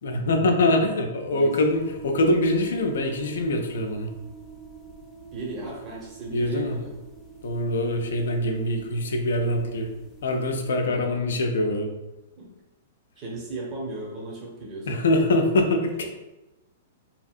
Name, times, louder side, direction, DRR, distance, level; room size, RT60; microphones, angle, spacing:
voice 1, 0.0-4.1 6.3-6.8 7.4-9.9 10.2-11.9 14.9-16.1, left 1 dB, 70° left, 4 dB, 0.4 m, -24 dB
voice 2, 1.2-1.6 5.3-6.9 10.8-11.1 12.3-12.5 13.2-15.0, right 2 dB, 35° right, -3 dB, 0.9 m, -36 dB
sound 1, 1.7-10.6, right 6 dB, 15° left, 0.6 m, -44 dB
2.8 x 2.6 x 2.4 m, 0.99 s
hypercardioid pair, 110°, 0 cm